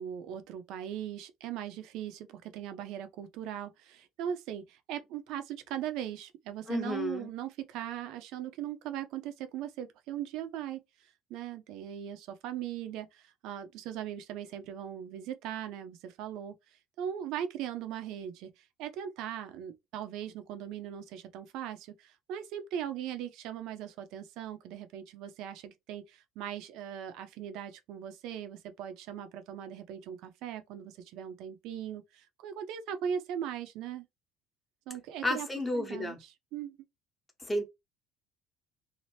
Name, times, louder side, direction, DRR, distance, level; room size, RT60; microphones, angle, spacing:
voice 1, 0.0-10.8 11.3-16.5 17.0-34.1 34.9-35.5 35.7-36.2 36.5-36.8, right 9 dB, 70° right, 0.6 m, -39 dB
voice 2, 6.7-7.3 35.2-36.2 37.4-37.6, left 1 dB, 10° left, 0.9 m, -32 dB
2.8 x 2.0 x 3.1 m
supercardioid pair, 110°, 0 cm